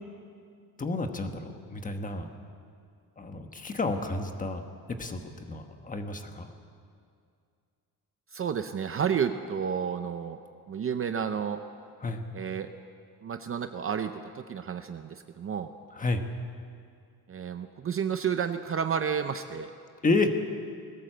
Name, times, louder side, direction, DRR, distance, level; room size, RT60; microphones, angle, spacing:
voice 1, 0.8-2.3 3.2-6.5 12.0-12.2 16.0-16.2 20.0-20.4, left 3 dB, 20° left, 5 dB, 1.3 m, -30 dB
voice 2, 8.3-10.4 10.7-11.6 12.3-12.7 13.2-15.7 17.3-19.7, right 7 dB, 35° right, 8 dB, 0.6 m, -31 dB
21.0 x 17.0 x 7.8 m, 2.3 s
cardioid pair, 175°, 39 cm